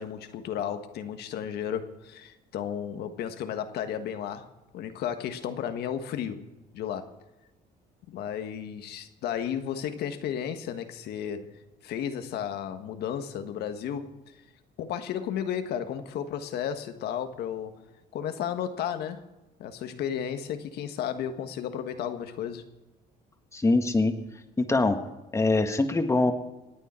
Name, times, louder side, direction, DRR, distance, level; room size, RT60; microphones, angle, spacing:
voice 1, 0.0-4.5 4.7-6.4 6.7-7.1 8.1-14.4 14.8-17.8 18.1-19.2 19.6-22.6, left 9 dB, 75° left, 8 dB, 1.5 m, -33 dB
voice 2, 23.5-24.1 24.6-25.0 25.3-26.3, left 2 dB, 15° left, 7 dB, 1.6 m, -23 dB
27.0 x 9.3 x 4.4 m, 1.1 s
cardioid pair, 110°, 17 cm